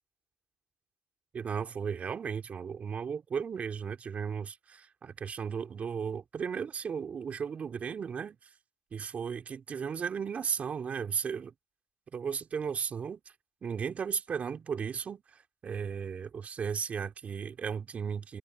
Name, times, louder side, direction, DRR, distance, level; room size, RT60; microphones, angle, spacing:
voice 1, 1.3-8.4 8.9-11.5 12.1-13.2 13.6-18.4, right 6 dB, 40° right, 4.3 m, -35 dB
supercardioid pair, 85°, 3 cm